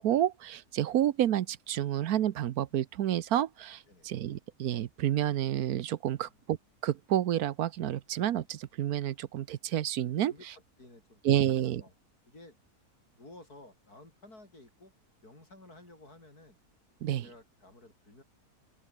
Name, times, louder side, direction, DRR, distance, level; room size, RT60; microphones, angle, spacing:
voice 1, 0.0-6.6 6.8-10.3 11.2-11.8 17.0-17.3, right 11 dB, 75° right, 1.2 m, -29 dB
voice 2, 10.3-11.9 12.2-12.6 13.1-14.9 15.2-16.6 17.2-18.2, left 2 dB, 75° left, 8.3 m, -54 dB
open air
omnidirectional pair, 1.6 m